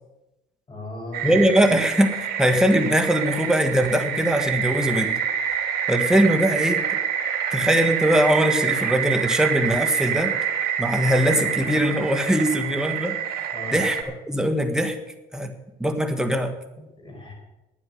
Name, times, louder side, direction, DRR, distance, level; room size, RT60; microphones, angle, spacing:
voice 1, 0.7-1.5 13.5-13.8 17.0-17.3, left 2 dB, 30° left, 2 dB, 5.1 m, -37 dB
sound 1, 1.1-14.0, right 8 dB, 70° right, 2.5 m, -27 dB
voice 2, 1.2-5.2 5.9-6.8 7.5-10.3 10.8-13.2 13.7-14.0 14.3-15.0 15.3-15.5 15.8-16.5, equal, 5° right, 5 dB, 1.6 m, -21 dB
12.0 x 9.4 x 7.9 m, 1.0 s
cardioid pair, 110°, 17 cm